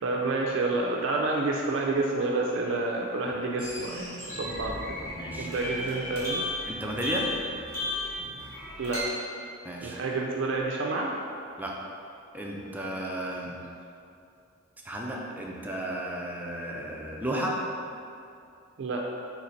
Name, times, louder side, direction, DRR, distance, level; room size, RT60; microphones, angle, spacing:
voice 1, 0.0-4.8 5.4-6.4 8.8-9.1 9.8-11.1 18.8-19.0, right 2 dB, 65° right, -1 dB, 0.4 m, -29 dB
sound 1, 3.6-9.0, left 1 dB, 15° left, 1.1 m, -35 dB
voice 2, 5.2-6.2 6.7-7.3 9.6-10.0 11.6-11.8 12.3-13.6 14.8-17.6, right 1 dB, 10° right, -2 dB, 0.4 m, -34 dB
3.9 x 3.1 x 4.3 m, 2.5 s
head